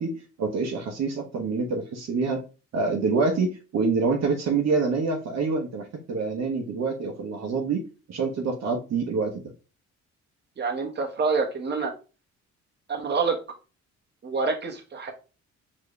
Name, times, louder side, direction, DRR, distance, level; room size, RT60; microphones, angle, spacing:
voice 1, 0.0-2.4 2.7-7.8 8.1-9.4, right 4 dB, 60° right, 2 dB, 1.0 m, -26 dB
voice 2, 10.6-11.9 12.9-13.4 14.2-15.1, right 4 dB, 35° right, 2 dB, 1.2 m, -27 dB
4.7 x 3.0 x 3.1 m, 0.33 s
cardioid pair, 90°, 30 cm